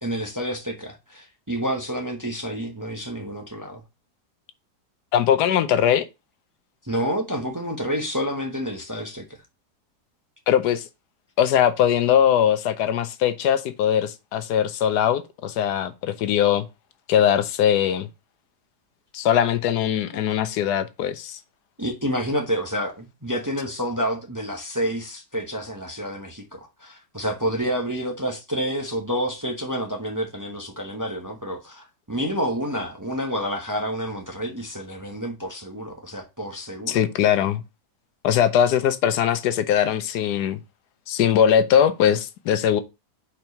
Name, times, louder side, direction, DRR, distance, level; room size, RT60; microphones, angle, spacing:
voice 1, 0.0-3.8 6.8-9.3 20.1-20.2 21.8-37.0, equal, 15° right, 0.8 m, -29 dB
voice 2, 5.1-6.1 10.5-10.8 11.4-16.7 17.1-18.1 19.1-21.4 36.9-37.6 38.2-40.6 41.1-42.8, left 9 dB, 75° left, 1.2 m, -21 dB
4.6 x 4.5 x 5.2 m
omnidirectional pair, 1.7 m